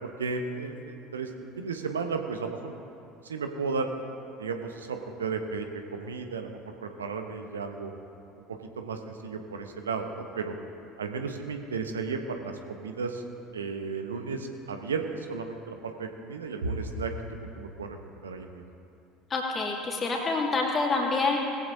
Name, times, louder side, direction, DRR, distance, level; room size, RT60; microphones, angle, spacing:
voice 1, 0.0-2.8 3.2-3.9 4.4-7.9 8.8-10.5 11.0-13.2 13.5-18.6, right 4 dB, 75° right, 5 dB, 1.0 m, -34 dB
voice 2, 19.3-21.4, left 3 dB, 30° left, -2 dB, 2.6 m, -27 dB
20.0 x 15.5 x 2.7 m, 2.7 s
figure-of-eight pair, 65°, 0 cm